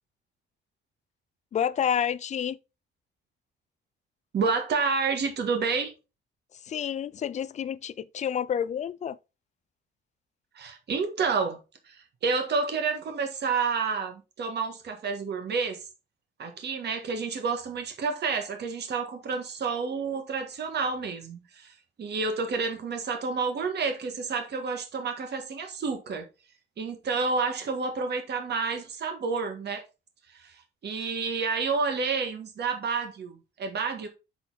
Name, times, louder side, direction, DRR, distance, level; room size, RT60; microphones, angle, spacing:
voice 1, 1.5-2.6 6.6-9.2, left 8 dB, 35° left, 0.4 m, -29 dB
voice 2, 4.3-5.9 10.5-11.6 11.9-15.8 16.4-26.2 26.8-29.8 30.3-34.1, right 4 dB, 60° right, 1.5 m, -29 dB
6.3 x 3.9 x 3.9 m
cardioid pair, 90°, 20 cm